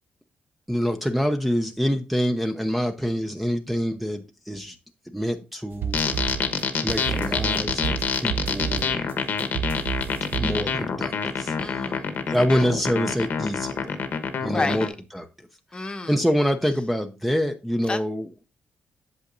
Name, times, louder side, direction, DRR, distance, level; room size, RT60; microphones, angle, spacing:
voice 1, 0.7-4.7 5.1-6.0 6.8-9.1 10.4-11.5 12.3-14.0 14.4-14.9 15.1-15.3 16.1-18.3, equal, ahead, 0.7 m, -26 dB
sound 1, 5.7-11.0, right 8 dB, 75° right, 0.9 m, -32 dB
sound 2, 5.9-14.9, left 6 dB, 65° left, 1.1 m, -26 dB
voice 2, 11.6-12.7 14.5-14.9 15.7-16.2 17.9-18.0, left 3 dB, 25° left, 1.0 m, -31 dB
8.3 x 7.3 x 2.6 m
cardioid pair, 110°, 4 cm